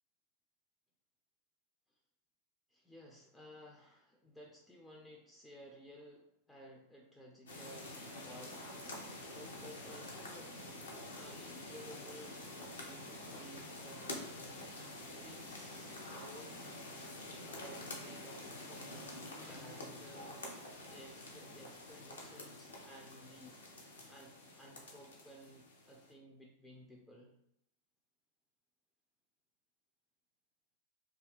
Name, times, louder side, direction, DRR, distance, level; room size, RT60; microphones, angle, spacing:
voice 1, 2.7-8.6 8.9-10.6 11.1-14.7 15.0-18.9 19.5-20.4 20.9-27.4, equal, 5° left, -1 dB, 0.4 m, -56 dB
sound 1, 7.5-26.1, left 1 dB, 70° left, 0.7 m, -48 dB
2.6 x 2.3 x 3.3 m, 0.74 s
figure-of-eight pair, 90°, 0 cm